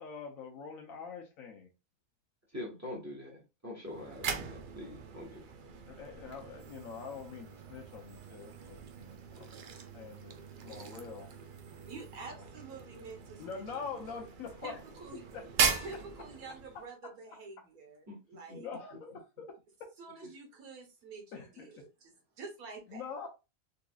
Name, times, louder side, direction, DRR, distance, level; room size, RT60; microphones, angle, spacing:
voice 1, 0.0-1.7 5.9-9.6 9.9-10.4 10.6-11.3 12.3-12.5 13.4-14.8 15.3-15.7 17.0-17.1 18.5-19.9 21.3-21.7 22.9-23.3, left 5 dB, 75° left, 1.1 m, -44 dB
voice 2, 2.5-5.5 9.3-9.5 18.1-18.2 18.5-18.6, left 1 dB, 10° right, 1.3 m, -44 dB
sound 1, 3.8-16.9, right 6 dB, 75° right, 0.4 m, -39 dB
voice 3, 11.9-14.1 14.6-15.2 15.8-18.7 20.0-23.0, right 4 dB, 90° right, 1.6 m, -48 dB
3.9 x 2.8 x 2.3 m
omnidirectional pair, 1.5 m